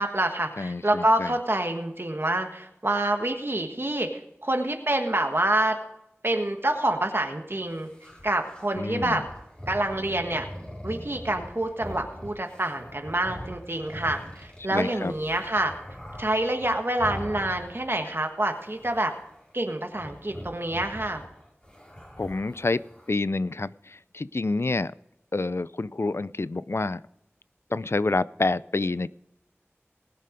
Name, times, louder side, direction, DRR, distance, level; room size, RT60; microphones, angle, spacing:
voice 1, 0.0-4.1 4.4-5.8 6.2-7.9 8.2-9.2 9.7-10.5 10.8-15.7 16.2-19.1 19.5-21.2, right 1 dB, 55° right, 4 dB, 1.5 m, -27 dB
voice 2, 0.6-1.3 8.7-9.2 14.7-15.1 22.2-22.8 23.1-24.9 25.3-27.0 27.7-29.1, left 3 dB, 65° left, 18 dB, 0.4 m, -28 dB
sound 1, 7.7-18.1 18.4-19.4 19.9-23.2, equal, 20° left, 4.2 m, -42 dB
20.0 x 6.7 x 5.1 m, 0.84 s
wide cardioid pair, 40°, 5 cm